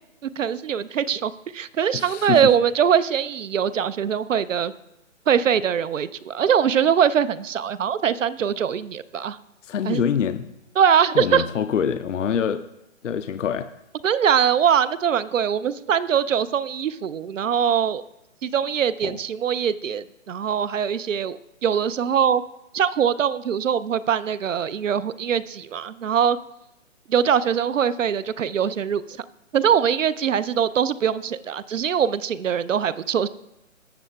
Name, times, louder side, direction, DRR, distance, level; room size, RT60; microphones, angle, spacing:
voice 1, 0.4-4.7 5.3-9.4 9.9-10.0 10.8-11.4 14.0-18.0 18.4-22.4 22.7-26.4 27.1-29.0 29.5-33.3, right 8 dB, 75° right, 15 dB, 0.5 m, -22 dB
voice 2, 1.9-2.5 9.6-10.5 11.1-12.6 13.0-13.7 19.0-19.2, left 8 dB, 70° left, 10 dB, 0.6 m, -25 dB
19.0 x 7.5 x 2.3 m, 0.89 s
figure-of-eight pair, 145°, 39 cm